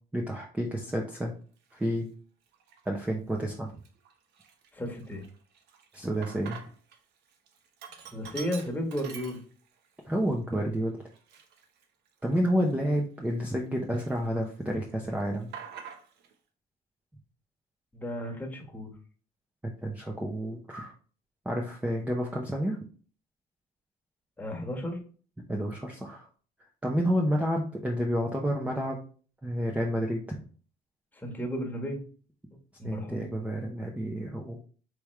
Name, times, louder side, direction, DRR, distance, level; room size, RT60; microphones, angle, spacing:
voice 1, 0.1-1.3 1.7-2.1 2.9-3.7 5.9-6.6 10.0-11.0 12.2-15.5 19.6-20.9 21.5-22.8 25.5-26.2 26.8-29.0 29.4-30.2 32.8-34.6, equal, 10° right, 0 dB, 0.8 m, -30 dB
Sink (filling or washing), 1.7-1.9 2.5-3.1 3.5-3.6 3.8-7.0 7.3-9.9 10.3-10.4 11.1-13.6 13.9-14.7 15.0-16.3, right 7 dB, 80° right, 0.8 m, -47 dB
voice 2, 4.7-5.2 8.1-9.4 17.9-18.9 24.4-25.0 31.2-32.0 32.8-33.3, equal, 10° left, 0 dB, 1.4 m, -34 dB
4.7 x 3.4 x 3.2 m, 0.40 s
cardioid pair, 110°, 17 cm